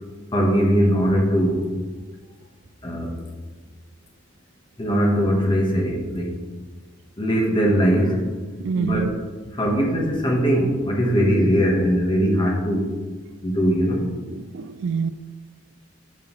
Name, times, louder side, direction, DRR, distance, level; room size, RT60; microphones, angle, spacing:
voice 1, 0.3-1.7 2.8-3.2 4.8-6.4 7.2-8.2 8.7-9.1 9.5-12.9 13.4-14.1, equal, 25° left, 0 dB, 1.2 m, -20 dB
voice 2, 8.6-9.1 14.3-15.1, right 5 dB, 65° right, 15 dB, 0.3 m, -26 dB
7.3 x 6.1 x 3.1 m, 1.3 s
head